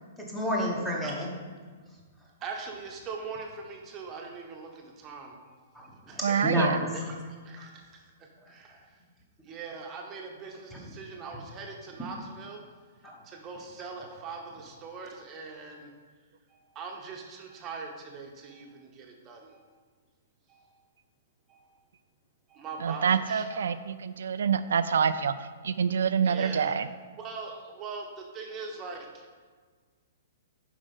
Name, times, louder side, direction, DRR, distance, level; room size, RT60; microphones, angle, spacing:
voice 1, 0.3-1.3 5.7-6.9 7.6-7.7 10.7-10.8 13.0-13.1, equal, ahead, -3 dB, 1.1 m, -29 dB
voice 2, 2.4-5.3 6.1-7.1 7.4-8.0 8.5-8.8 9.4-12.6 13.2-15.9 16.5-19.7 20.5-20.7 21.5-21.7 22.5-23.7 26.2-26.8 27.2-29.2, right 4 dB, 20° right, 1 dB, 1.0 m, -41 dB
voice 3, 6.2-6.8 22.8-25.3 25.6-26.9, right 7 dB, 90° right, 11 dB, 0.4 m, -26 dB
7.0 x 5.3 x 5.5 m, 1.5 s
hypercardioid pair, 170°, 0 cm